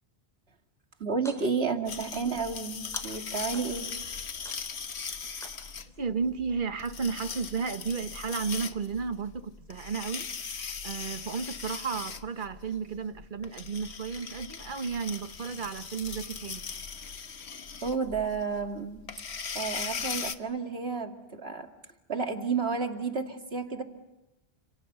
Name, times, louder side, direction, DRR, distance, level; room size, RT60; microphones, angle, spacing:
voice 1, 1.0-3.9 17.8-19.0 19.5-21.7 22.1-23.8, right 5 dB, 75° right, 2.6 m, -31 dB
sound 1, 1.1-1.7 2.1-2.7 2.9-3.9 4.4-5.0 5.4-6.0, equal, 5° left, 5.1 m, -48 dB
sound 2, 1.9-20.3, left 6 dB, 85° left, 1.4 m, -39 dB
voice 2, 6.0-16.7, right 5 dB, 50° right, 1.3 m, -33 dB
29.5 x 27.5 x 6.8 m
omnidirectional pair, 1.1 m